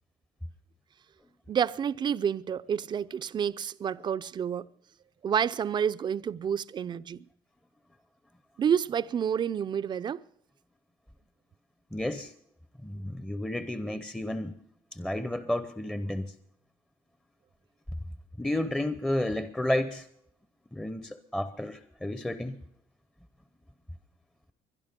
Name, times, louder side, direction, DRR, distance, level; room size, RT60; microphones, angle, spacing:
voice 1, 1.5-4.7 5.2-7.2 8.6-10.2, right 8 dB, 40° right, 0.5 m, -29 dB
voice 2, 11.9-12.3 12.8-14.5 14.9-16.3 18.4-20.1 20.7-22.6, left 1 dB, 5° left, 0.8 m, -31 dB
22.0 x 11.5 x 5.2 m
cardioid pair, 95°, 12 cm